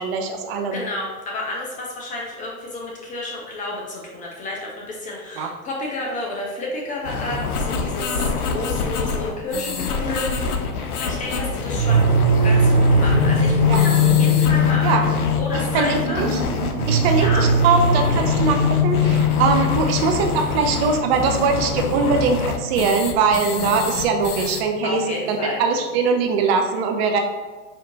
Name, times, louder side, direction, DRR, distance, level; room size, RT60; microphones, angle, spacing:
voice 1, 0.0-0.8 5.4-5.5 13.7-13.8 14.8-15.0 15.7-16.4 16.9-25.0 25.3-27.2, right 5 dB, 45° right, 4 dB, 0.5 m, -21 dB
voice 2, 0.7-10.6 11.0-12.1 12.4-16.2 17.1-17.5 24.8-25.6, left 1 dB, 20° left, -2 dB, 0.4 m, -30 dB
sound 1, 7.0-24.6, left 5 dB, 90° left, 0.6 m, -27 dB
sound 2, 11.8-24.5, left 1 dB, 85° right, 0.7 m, -21 dB
4.3 x 2.8 x 2.6 m, 1.3 s
hypercardioid pair, 105°, 44 cm